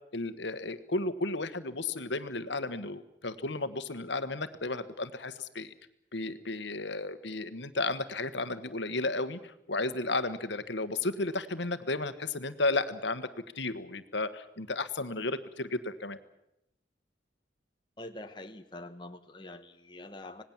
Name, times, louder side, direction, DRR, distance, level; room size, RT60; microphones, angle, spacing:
voice 1, 0.1-5.7 6.1-13.3 13.5-16.2, left 2 dB, 70° left, 12 dB, 1.4 m, -33 dB
voice 2, 18.0-20.4, left 1 dB, 25° left, 6 dB, 1.1 m, -45 dB
26.0 x 19.0 x 7.4 m, 0.83 s
head